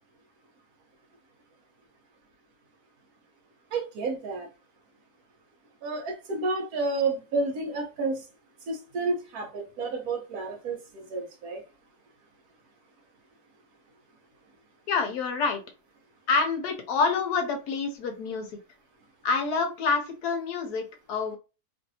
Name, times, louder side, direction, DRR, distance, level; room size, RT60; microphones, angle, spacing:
voice 1, 3.7-4.5 5.8-8.2 8.7-11.6, right 3 dB, 65° right, 1.2 m, -30 dB
voice 2, 14.9-15.6 16.3-18.5 19.2-21.4, left 4 dB, 70° left, 1.1 m, -27 dB
3.1 x 2.6 x 2.7 m
omnidirectional pair, 1.9 m